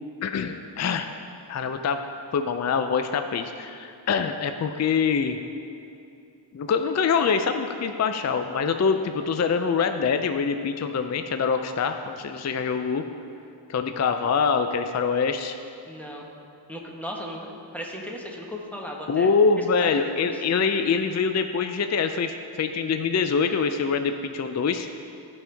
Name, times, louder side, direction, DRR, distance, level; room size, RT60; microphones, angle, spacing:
voice 1, 0.2-1.1 1.5-2.0 2.3-5.4 6.5-13.0 13.7-15.6 19.1-24.9, left 5 dB, 40° left, 8 dB, 0.4 m, -24 dB
voice 2, 15.9-16.3 16.7-19.9 20.2-20.4, equal, 5° left, -1 dB, 1.3 m, -36 dB
14.5 x 5.4 x 3.5 m, 2.6 s
wide cardioid pair, 70°, 47 cm